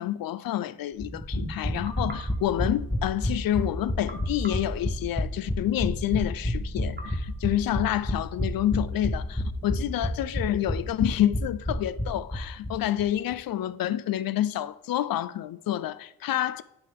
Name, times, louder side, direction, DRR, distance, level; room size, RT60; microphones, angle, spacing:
voice 1, 0.0-16.6, left 12 dB, 75° left, 0.5 m, -28 dB
sound 1, 1.0-12.7 13.0-13.1 13.3-13.4, left 1 dB, 5° left, 1.1 m, -30 dB
sound 2, 1.8-3.4 4.1-5.7 7.0-8.3, right 2 dB, 30° right, 1.3 m, -47 dB
9.1 x 6.9 x 3.6 m
cardioid pair, 55°, 35 cm